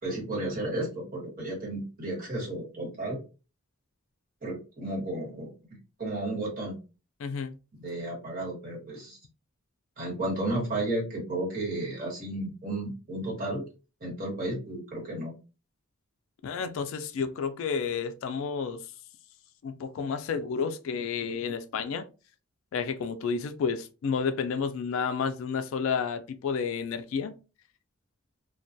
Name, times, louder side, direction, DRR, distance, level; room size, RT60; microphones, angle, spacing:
voice 1, 0.0-3.2 4.4-5.5 6.0-6.8 7.7-9.2 10.0-13.6 14.0-15.3, right 1 dB, 45° right, 1.2 m, -33 dB
voice 2, 7.2-7.5 16.4-18.8 19.6-22.0 22.7-27.3, left 6 dB, 65° left, 0.3 m, -31 dB
2.2 x 2.2 x 2.5 m
head